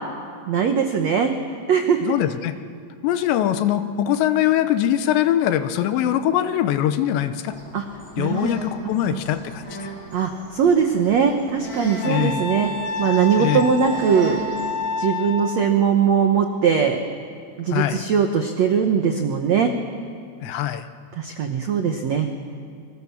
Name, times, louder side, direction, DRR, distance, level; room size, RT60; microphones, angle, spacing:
voice 1, 0.5-1.3 1.7-2.0 7.7-7.8 8.2-8.5 9.1-9.2 10.1-12.7 13.0-14.4 15.0-17.0 17.6-19.7 21.2-22.3, right 7 dB, 85° right, 5 dB, 1.5 m, -20 dB
voice 2, 2.0-2.5 3.0-7.6 8.2-9.9 12.0-12.4 13.4-13.7 17.7-18.0 20.4-20.9, left 11 dB, 80° left, 10 dB, 3.1 m, -22 dB
sound 1, 7.5-15.1, equal, 5° left, 4.1 m, -37 dB
Wind instrument woodwind instrument, 12.0-15.7, left 2 dB, 65° left, 1.3 m, -28 dB
28.0 x 24.0 x 7.2 m, 2.3 s
omnidirectional pair, 5.1 m